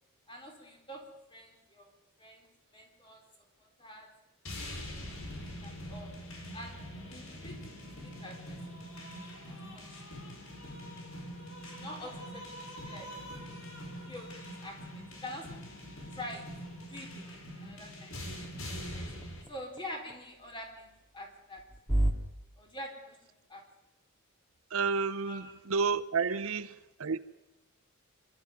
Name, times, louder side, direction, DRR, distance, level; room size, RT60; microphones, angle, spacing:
voice 1, 0.3-1.0 1.3-1.9 2.2-3.2 3.6-4.1 4.7-6.1 6.5-6.8 7.1-8.8 9.4-10.2 11.5-13.1 14.1-15.6 16.1-16.5 16.9-18.2 18.9-19.1 19.5-21.6 22.6-23.6 25.3-25.5 26.3-26.4, left 1 dB, 20° left, 3.9 m, -46 dB
sound 1, 4.4-19.4, equal, 65° left, 4.9 m, -44 dB
sound 2, 18.1-22.1, right 1 dB, ahead, 2.4 m, -37 dB
voice 2, 24.7-27.2, right 5 dB, 70° right, 0.7 m, -31 dB
25.5 x 12.0 x 9.3 m
head